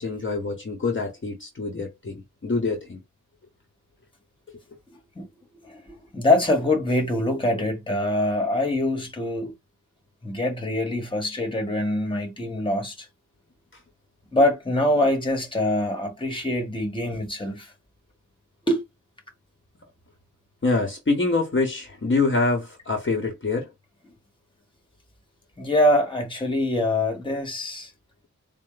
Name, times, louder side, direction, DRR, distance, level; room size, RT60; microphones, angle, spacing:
voice 1, 0.0-3.0 4.5-4.6 20.6-23.7, left 3 dB, 40° left, 1.0 m, -25 dB
voice 2, 5.6-9.5 10.2-13.1 14.3-17.7 18.7-18.8 25.6-27.9, left 1 dB, 15° left, 1.2 m, -24 dB
4.3 x 2.0 x 3.8 m
wide cardioid pair, 100°, 31 cm